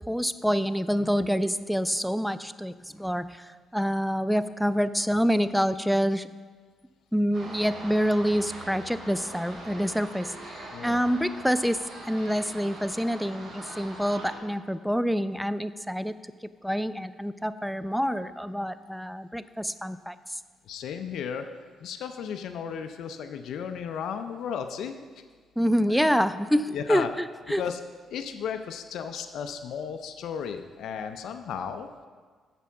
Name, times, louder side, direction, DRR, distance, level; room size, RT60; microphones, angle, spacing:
voice 1, 0.1-6.3 7.1-20.4 25.6-27.6, equal, ahead, 14 dB, 0.3 m, -27 dB
sound 1, 7.3-14.4, right 2 dB, 50° right, 3.1 m, -42 dB
voice 2, 10.7-11.0 20.6-21.5 21.8-25.2 26.7-27.1 27.6-27.8 28.1-31.9, left 7 dB, 75° left, 7 dB, 0.5 m, -34 dB
6.8 x 6.1 x 7.1 m, 1.5 s
cardioid pair, 90°, 0 cm